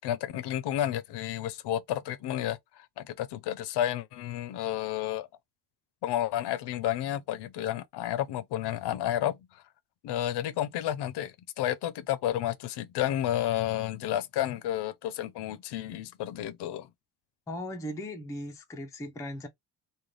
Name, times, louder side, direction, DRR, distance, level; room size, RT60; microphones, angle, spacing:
voice 1, 0.0-5.3 6.0-9.6 10.0-16.9, left 12 dB, 70° left, 0.6 m, -31 dB
voice 2, 17.5-19.5, left 1 dB, 10° left, 0.3 m, -38 dB
3.2 x 2.2 x 3.8 m
cardioid pair, 175°, 42 cm